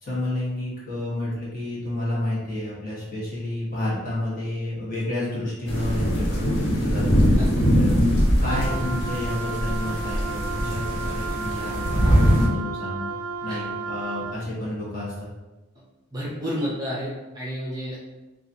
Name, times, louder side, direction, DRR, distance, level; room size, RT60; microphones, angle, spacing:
voice 1, 0.0-7.2 7.8-7.9 8.4-13.1 13.4-15.3, left 1 dB, 35° left, -7 dB, 1.2 m, -30 dB
sound 1, 5.7-12.5, equal, 70° left, 1.2 m, -22 dB
Wind instrument woodwind instrument, 8.4-14.4, right 4 dB, 70° right, 0.4 m, -33 dB
voice 2, 16.1-18.0, equal, 15° right, -5 dB, 0.6 m, -31 dB
4.7 x 2.4 x 2.7 m, 1.1 s
head